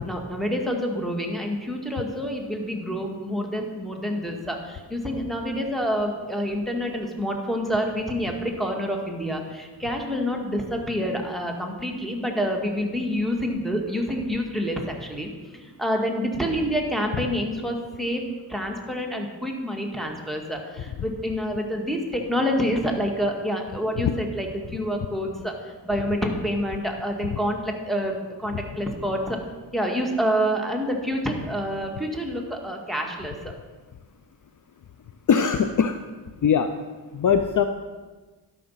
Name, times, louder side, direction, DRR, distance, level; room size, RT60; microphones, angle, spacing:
voice 1, 0.0-18.2 18.5-29.4 29.7-33.4, equal, ahead, 1 dB, 1.9 m, -27 dB
voice 2, 35.3-36.0 36.4-36.7 37.1-37.6, left 7 dB, 50° left, 8 dB, 0.6 m, -20 dB
11.5 x 5.4 x 5.7 m, 1.3 s
cardioid pair, 60°, 42 cm